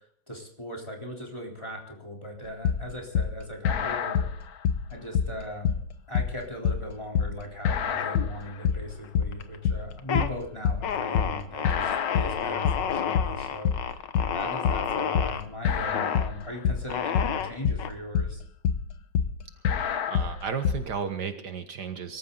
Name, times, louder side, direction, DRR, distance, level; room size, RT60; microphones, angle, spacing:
voice 1, 0.0-4.3 4.9-5.8 6.1-14.1 14.3-18.4, equal, 15° left, 0 dB, 3.7 m, -39 dB
sound 1, 2.6-20.9, left 7 dB, 60° left, 1.4 m, -27 dB
sound 2, 8.0-8.7 9.0-9.6 9.9-10.3 10.8-15.4 15.9-16.3 16.9-17.9, left 8 dB, 85° left, 1.7 m, -31 dB
voice 2, 20.1-22.2, right 6 dB, 70° right, 8 dB, 1.8 m, -33 dB
24.0 x 14.0 x 3.9 m, 0.63 s
omnidirectional pair, 1.9 m